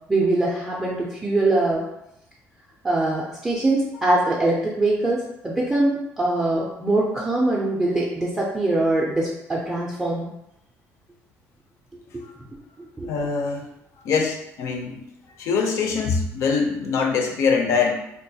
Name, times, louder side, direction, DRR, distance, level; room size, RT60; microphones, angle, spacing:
voice 1, 0.1-1.9 2.8-10.3 12.1-12.2 13.0-13.1, right 2 dB, 10° right, -5 dB, 0.4 m, -23 dB
voice 2, 13.0-13.7 14.0-15.0 15.4-17.9, left 5 dB, 55° left, 3 dB, 0.5 m, -23 dB
3.7 x 2.4 x 2.7 m, 0.80 s
cardioid pair, 175°, 6 cm